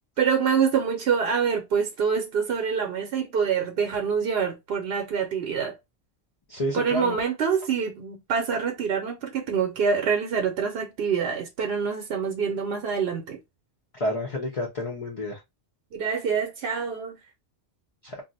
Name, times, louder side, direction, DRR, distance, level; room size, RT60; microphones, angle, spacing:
voice 1, 0.2-5.7 6.7-13.4 15.9-17.1, right 6 dB, 70° right, 0.8 m, -26 dB
voice 2, 6.5-7.2 14.0-15.4 18.0-18.2, left 1 dB, 40° left, 0.6 m, -29 dB
2.4 x 2.0 x 3.8 m
omnidirectional pair, 1.1 m